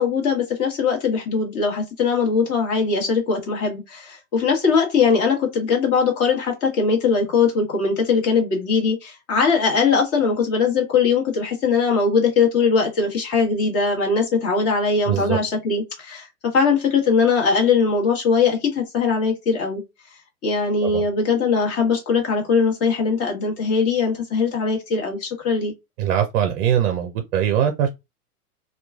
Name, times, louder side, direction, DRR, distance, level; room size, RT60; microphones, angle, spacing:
voice 1, 0.0-19.8 20.4-25.7, left 5 dB, 30° left, 1.2 m, -20 dB
voice 2, 15.1-15.4 20.8-21.1 26.0-27.9, right 9 dB, 45° right, 0.5 m, -21 dB
2.9 x 2.3 x 2.3 m
hypercardioid pair, 105°, 46 cm